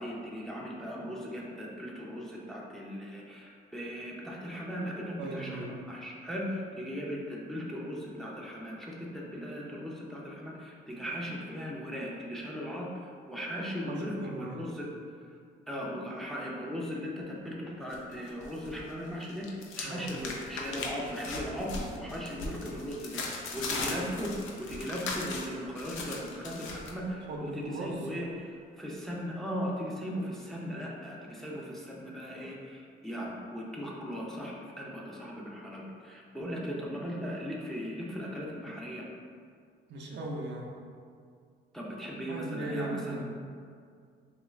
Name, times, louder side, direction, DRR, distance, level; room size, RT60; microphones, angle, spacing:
voice 1, 0.0-14.9 15.7-39.1 41.7-43.2, equal, ahead, -4 dB, 0.5 m, -38 dB
voice 2, 5.2-5.8 13.8-14.7 19.8-20.1 27.3-28.1 39.9-40.7 42.3-43.2, right 2 dB, 65° right, -1 dB, 0.5 m, -38 dB
sound 1, 17.9-18.8 19.1-26.9, left 3 dB, 85° left, 0.5 m, -38 dB
3.0 x 2.4 x 3.1 m, 2.2 s
cardioid pair, 90°, 20 cm